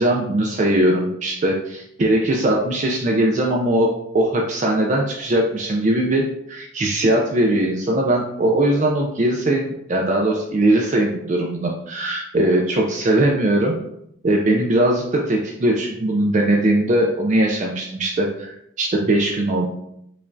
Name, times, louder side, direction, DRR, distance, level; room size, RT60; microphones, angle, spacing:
voice 1, 0.0-3.9 4.1-13.8 14.2-19.7, right 1 dB, 35° right, 0 dB, 0.3 m, -20 dB
5.0 x 2.3 x 2.5 m, 0.76 s
head